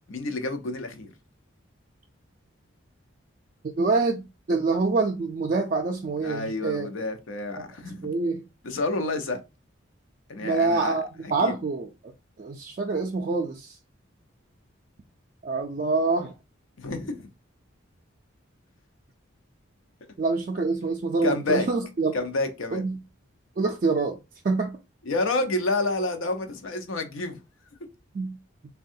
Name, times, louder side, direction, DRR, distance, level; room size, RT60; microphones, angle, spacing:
voice 1, 0.1-1.1 6.2-8.0 8.6-9.4 10.3-11.0 11.4-11.5 16.8-17.3 21.2-21.7 22.1-22.8 25.0-27.4, left 2 dB, 75° left, 0.6 m, -29 dB
voice 2, 3.8-6.9 7.6-7.7 7.9-8.4 10.4-12.1 12.4-13.8 15.4-16.3 20.2-22.1 22.7-23.0 23.6-24.2 24.4-24.8 28.1-28.4, right 3 dB, 40° right, 0.3 m, -26 dB
3.5 x 2.2 x 2.5 m
head